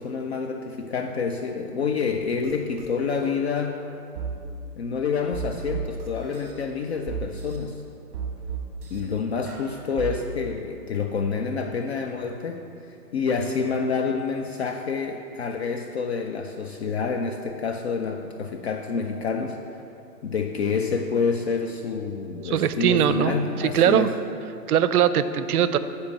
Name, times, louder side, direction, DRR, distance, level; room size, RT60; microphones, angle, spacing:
voice 1, 0.0-3.9 4.8-7.8 8.9-12.7 13.1-19.6 20.2-24.1, left 5 dB, 45° left, 4 dB, 0.5 m, -28 dB
sound 1, 2.4-2.5 2.8-3.3 4.2-4.3 5.3-6.5 7.1-7.6 8.1-9.0 9.5-10.1, right 6 dB, 35° right, 1.4 m, -33 dB
voice 2, 22.4-24.1 24.7-25.8, right 9 dB, 70° right, 13 dB, 0.6 m, -21 dB
8.3 x 4.4 x 7.2 m, 2.7 s
hypercardioid pair, 145°, 46 cm